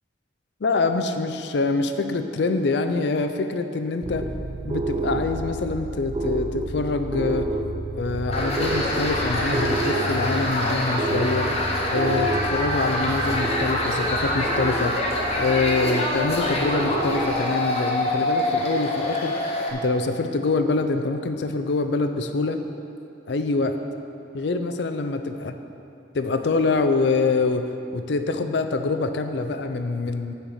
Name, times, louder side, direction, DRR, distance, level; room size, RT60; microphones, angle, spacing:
voice 1, 0.6-4.3 4.6-7.5 7.9-11.5 11.9-14.9 15.4-19.4 19.7-22.6 23.3-23.8 24.3-25.5 26.1-27.7 27.9-30.3, left 3 dB, 65° left, 8 dB, 0.5 m, -25 dB
sound 1, 4.0-17.4, right 2 dB, 25° right, 0.4 m, -30 dB
sound 2, 8.3-19.7, left 1 dB, 30° left, 0.9 m, -25 dB
9.0 x 4.3 x 6.3 m, 2.7 s
head